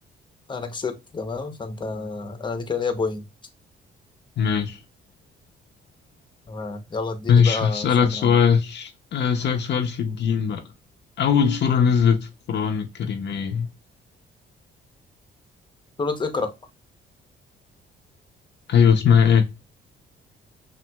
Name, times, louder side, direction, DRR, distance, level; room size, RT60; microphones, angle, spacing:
voice 1, 0.5-3.3 6.5-8.3 16.0-16.5, left 4 dB, 25° left, 0.8 m, -29 dB
voice 2, 4.4-4.8 7.3-10.6 11.2-13.7 18.7-19.4, left 7 dB, 60° left, 0.6 m, -20 dB
5.8 x 2.5 x 2.3 m
cardioid pair, 90°, 20 cm